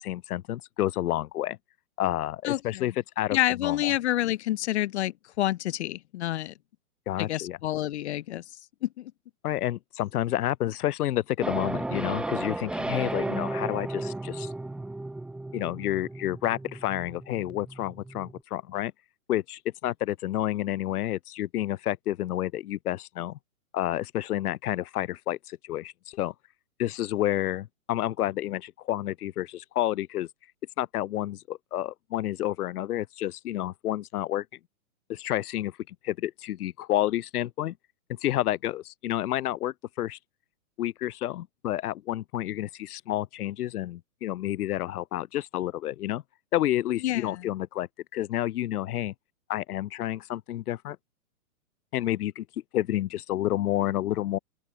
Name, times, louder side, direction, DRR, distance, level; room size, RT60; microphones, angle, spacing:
voice 1, 0.0-1.6 2.0-3.9 7.1-7.6 9.4-14.5 15.5-18.9 19.3-23.4 23.7-26.3 26.8-30.3 30.8-34.4 35.1-37.7 38.2-40.2 40.8-46.2 46.5-49.1 49.5-51.0 51.9-52.4 52.7-54.4, left 13 dB, 85° left, 0.6 m, -30 dB
voice 2, 2.4-2.8 3.3-6.5 7.2-8.4 8.8-9.1 47.0-47.5, left 14 dB, 50° left, 0.7 m, -28 dB
sound 1, 11.4-18.4, right 2 dB, ahead, 1.0 m, -34 dB
open air
hypercardioid pair, 145°, 44 cm